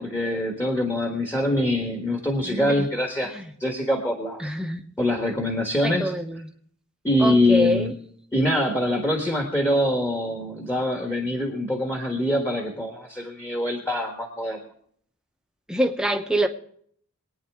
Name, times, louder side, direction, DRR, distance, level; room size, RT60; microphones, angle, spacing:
voice 1, 0.0-3.3 3.6-4.4 5.0-6.1 7.0-7.9 8.3-14.6, left 1 dB, 10° left, 1 dB, 1.4 m, -24 dB
voice 2, 2.5-2.8 3.3-3.4 4.4-4.8 5.8-6.4 7.2-7.9 15.7-16.5, right 1 dB, 5° right, 4 dB, 0.9 m, -25 dB
23.5 x 9.6 x 3.6 m, 0.62 s
head